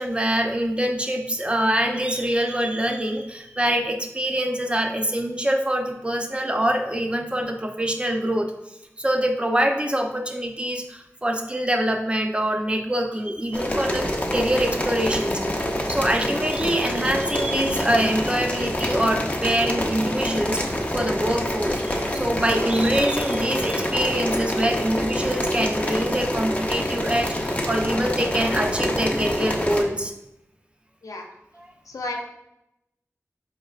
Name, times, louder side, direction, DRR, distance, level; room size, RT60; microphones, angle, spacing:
voice 1, 0.0-8.5 9.0-15.4 15.9-30.1 31.6-31.7, right 1 dB, 20° right, 4 dB, 0.5 m, -24 dB
sound 1, 13.5-29.8, left 1 dB, 25° left, 0.6 m, -26 dB
voice 2, 31.9-32.2, left 2 dB, 90° left, 1 dB, 0.5 m, -32 dB
4.5 x 3.2 x 2.4 m, 0.83 s
wide cardioid pair, 45°, 6 cm